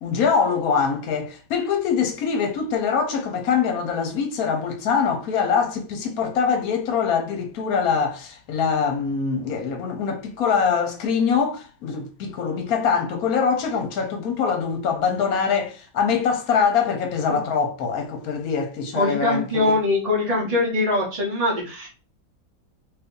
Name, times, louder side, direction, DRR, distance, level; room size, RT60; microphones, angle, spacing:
voice 1, 0.0-19.8, left 6 dB, 65° left, 1.1 m, -23 dB
voice 2, 18.9-21.9, left 2 dB, 40° right, 0.5 m, -22 dB
2.8 x 2.6 x 3.6 m
omnidirectional pair, 1.9 m